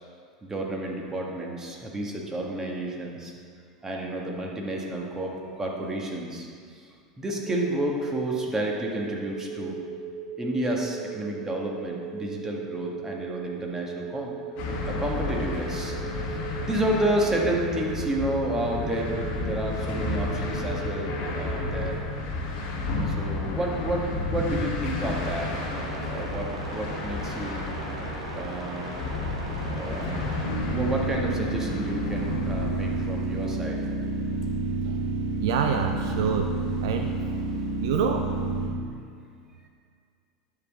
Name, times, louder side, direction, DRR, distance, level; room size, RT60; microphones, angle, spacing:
voice 1, 0.4-3.3 3.8-6.5 6.7-6.9 7.2-9.8 10.4-14.3 14.9-15.9 16.6-21.9 23.0-27.6 28.3-28.9 29.7-30.4 30.7-33.8, right 1 dB, 15° right, -1 dB, 1.6 m, -30 dB
sound 1, 7.5-22.0, right 6 dB, 5° left, 0.9 m, -38 dB
sound 2, 14.6-33.0, left 3 dB, 45° left, 1.4 m, -32 dB
sound 3, 25.0-38.7, right 2 dB, 75° right, 1.9 m, -31 dB
voice 2, 35.4-36.5 36.8-37.1 37.8-38.3, right 7 dB, 60° right, 5 dB, 0.5 m, -26 dB
10.5 x 7.3 x 3.6 m, 2.2 s
figure-of-eight pair, 85°, 3 cm